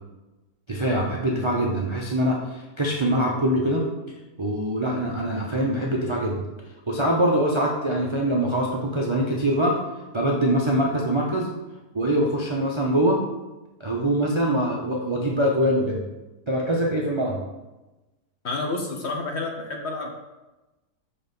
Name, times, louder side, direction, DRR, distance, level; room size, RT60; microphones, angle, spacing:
voice 1, 0.7-3.8 4.4-6.4 6.9-9.7 10.1-11.5 11.9-13.2 13.8-16.0 16.5-17.4, right 1 dB, 45° right, -3 dB, 0.3 m, -23 dB
voice 2, 18.4-20.1, left 3 dB, 50° left, 1 dB, 0.9 m, -29 dB
5.9 x 4.1 x 5.3 m, 1.1 s
omnidirectional pair, 1.8 m